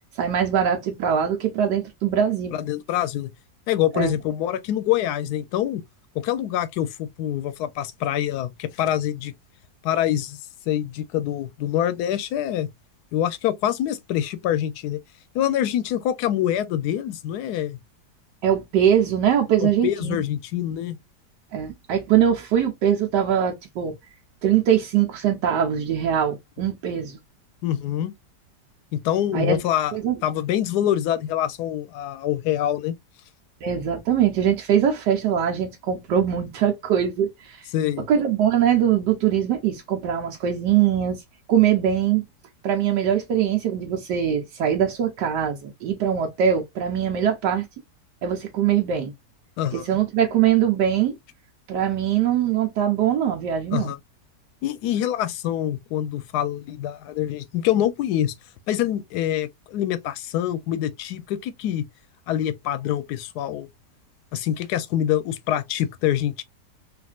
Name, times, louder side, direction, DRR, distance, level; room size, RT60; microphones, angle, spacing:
voice 1, 0.2-2.6 3.9-4.2 18.4-20.2 21.5-23.9 24.4-27.2 29.3-29.6 29.9-30.1 33.6-37.7 38.1-41.2 41.5-42.2 42.6-47.7 48.2-49.1 49.7-51.2 51.7-53.9, right 9 dB, 80° right, 1.3 m, -22 dB
voice 2, 2.5-3.3 3.7-5.8 6.1-9.3 9.8-10.4 10.7-12.7 13.1-15.0 15.3-17.8 19.6-21.0 27.6-28.1 28.9-33.0 37.7-38.1 49.6-49.9 53.7-54.0 54.6-58.3 58.7-61.8 62.3-63.7 64.3-66.4, left 11 dB, 75° left, 1.0 m, -25 dB
3.5 x 2.5 x 2.3 m
omnidirectional pair, 1.8 m